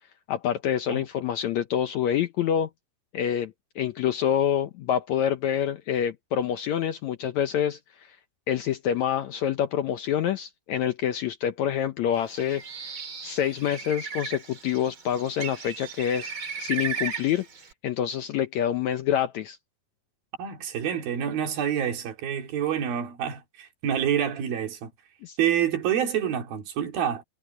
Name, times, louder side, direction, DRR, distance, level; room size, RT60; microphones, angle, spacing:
voice 1, 0.3-2.7 3.1-7.8 8.5-12.9 13.2-16.3 16.6-17.5 17.8-19.6 25.2-25.4, left 10 dB, 70° left, 1.8 m, -27 dB
Bird, 12.2-17.7, right 6 dB, 40° right, 3.0 m, -36 dB
voice 2, 20.4-24.9 25.4-27.2, right 9 dB, 85° right, 4.3 m, -27 dB
omnidirectional pair, 4.1 m